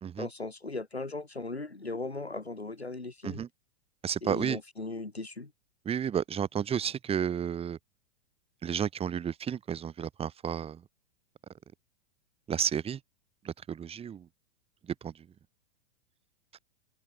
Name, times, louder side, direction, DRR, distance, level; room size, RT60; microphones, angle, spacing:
voice 1, 0.2-3.4 4.2-5.5, left 3 dB, 90° left, 4.6 m, -38 dB
voice 2, 4.0-4.6 5.9-7.8 8.6-10.8 12.5-13.0 13.4-14.3 15.0-15.1, right 8 dB, 20° right, 1.9 m, -32 dB
open air
figure-of-eight pair, 100°, 31 cm